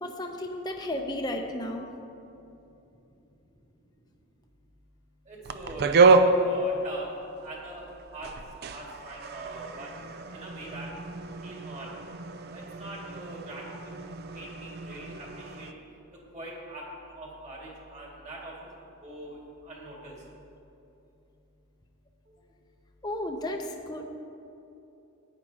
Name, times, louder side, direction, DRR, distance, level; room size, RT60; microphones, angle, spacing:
voice 1, 0.0-1.8 23.0-24.1, left 1 dB, 20° left, 3 dB, 0.5 m, -33 dB
voice 2, 5.3-7.1 7.4-8.3 8.6-9.9 10.3-10.9 11.4-11.9 12.5-14.0 14.3-15.7 16.3-16.8 17.2-18.7 19.0-19.4 19.6-20.2, right 1 dB, 30° right, -4 dB, 2.0 m, -42 dB
sound 1, 5.4-7.6 8.0-15.7, right 3 dB, 45° right, 0.4 m, -28 dB
14.0 x 9.6 x 2.8 m, 2.8 s
head